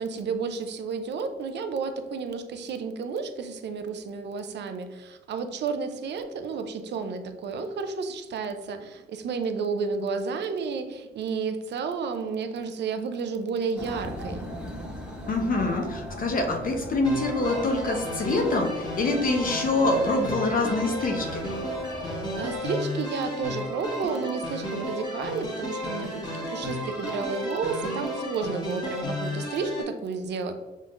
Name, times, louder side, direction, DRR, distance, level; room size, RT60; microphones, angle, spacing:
voice 1, 0.0-14.5 22.0-30.5, right 5 dB, 60° right, 7 dB, 0.6 m, -31 dB
sound 1, 13.8-22.6, equal, 5° right, 1.1 m, -39 dB
voice 2, 15.3-21.3, left 2 dB, 45° left, 2 dB, 0.8 m, -25 dB
sound 2, 17.0-29.8, left 1 dB, 20° left, 1.5 m, -33 dB
5.6 x 3.7 x 2.5 m, 1.2 s
cardioid pair, 90°, 20 cm